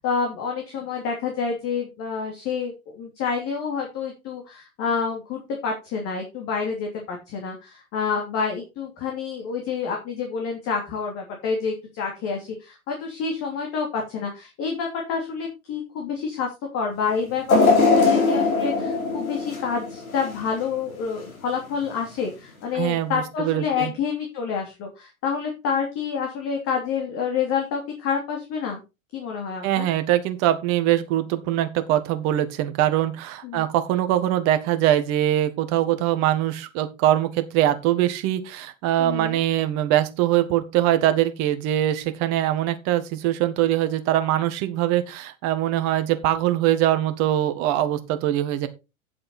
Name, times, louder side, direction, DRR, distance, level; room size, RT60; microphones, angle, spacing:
voice 1, 0.0-28.8 29.1-29.9 33.4-33.6 39.0-39.4, left 6 dB, 35° left, 1 dB, 3.1 m, -28 dB
sound 1, 17.5-20.6 21.1-21.2 22.2-22.3, left 3 dB, 80° left, 3.9 m, -20 dB
voice 2, 22.7-23.9 29.6-48.7, right 12 dB, 40° right, 10 dB, 1.6 m, -22 dB
9.3 x 7.6 x 4.2 m, 0.27 s
figure-of-eight pair, 100°, 42 cm